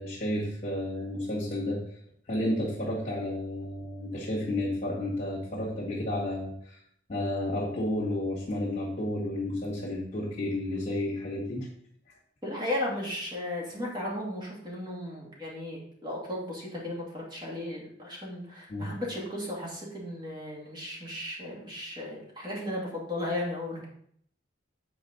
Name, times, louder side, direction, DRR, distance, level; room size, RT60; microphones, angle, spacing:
voice 1, 0.0-1.8 2.3-6.8 7.1-11.7 18.7-18.9, left 1 dB, 40° left, -7 dB, 2.0 m, -31 dB
voice 2, 12.4-23.9, left 1 dB, 25° right, -3 dB, 2.2 m, -35 dB
8.4 x 4.8 x 3.9 m, 0.65 s
head